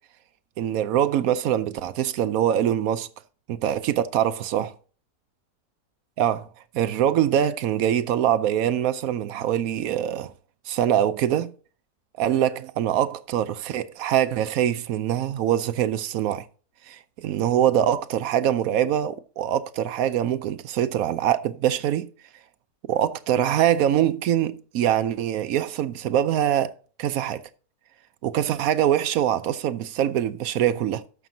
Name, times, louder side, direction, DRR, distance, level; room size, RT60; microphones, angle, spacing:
voice 1, 0.6-3.1 3.5-4.7 6.2-6.5 6.7-10.3 10.7-11.5 12.2-16.5 16.9-22.1 22.9-26.7 27.0-27.4 28.2-31.0, right 10 dB, 70° right, 0.9 m, -23 dB
13.0 x 6.1 x 2.7 m
omnidirectional pair, 1.8 m